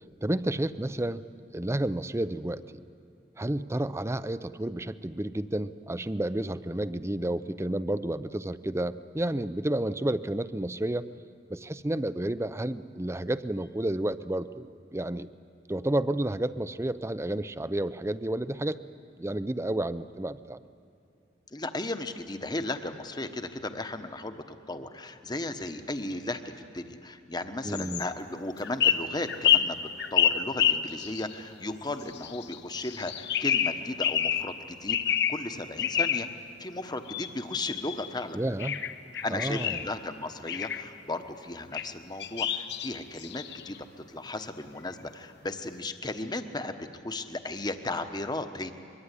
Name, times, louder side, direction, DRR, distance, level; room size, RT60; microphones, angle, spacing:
voice 1, 0.2-1.2 1.5-2.8 3.4-11.1 11.5-15.3 15.7-18.8 19.2-20.6 27.6-28.0 38.3-38.8 39.3-39.8, right 1 dB, 15° right, 14 dB, 0.6 m, -31 dB
voice 2, 21.5-36.3 36.6-38.4 39.2-48.7, left 2 dB, 25° left, 8 dB, 1.2 m, -35 dB
sound 1, 27.7-28.1 28.6-31.3 32.1-32.6 32.8-34.5 34.9-35.4 35.8-36.3 37.1-38.1 38.6-39.9 40.5-40.8 41.7-41.9 42.2-43.8, left 9 dB, 60° left, 1.0 m, -28 dB
24.0 x 23.0 x 9.9 m, 2.7 s
head